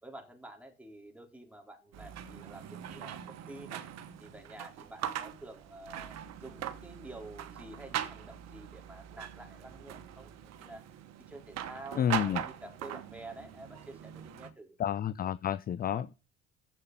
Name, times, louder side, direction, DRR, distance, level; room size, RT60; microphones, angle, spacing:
voice 1, 0.0-3.8 4.2-10.3 10.6-10.8 11.3-14.8 15.9-16.0, right 2 dB, 5° right, 3.3 m, -49 dB
sound 1, 1.9-14.5, right 10 dB, 55° right, 1.1 m, -41 dB
voice 2, 12.0-12.4 14.8-16.2, left 10 dB, 30° left, 0.4 m, -30 dB
7.4 x 6.6 x 7.3 m
hypercardioid pair, 60°, 32 cm